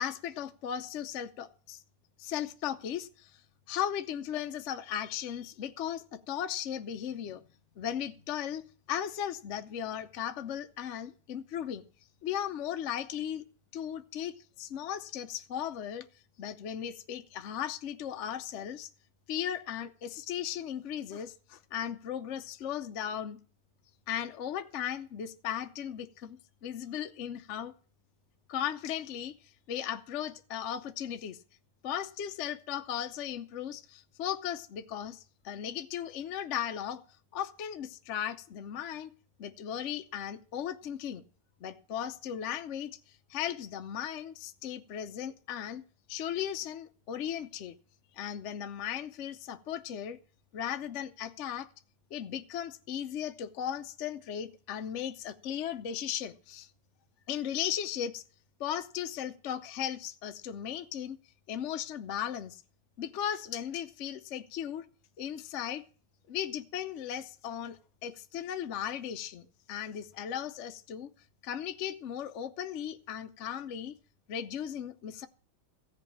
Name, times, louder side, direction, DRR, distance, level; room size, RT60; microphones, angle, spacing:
voice 1, 0.0-1.8 2.2-3.3 3.7-7.4 7.8-11.9 12.2-13.4 13.7-16.1 16.4-18.9 19.3-23.4 24.1-27.7 28.5-29.3 29.7-31.4 31.8-37.0 37.3-39.1 39.4-41.2 41.6-43.0 43.3-45.8 46.1-47.7 48.2-50.2 50.5-51.7 52.1-56.7 57.3-58.2 58.6-61.2 61.5-62.6 63.0-64.9 65.2-65.8 66.3-71.1 71.4-73.9 74.3-75.3, left 9 dB, 70° left, 0.6 m, -36 dB
15.0 x 5.3 x 8.4 m
omnidirectional pair, 2.3 m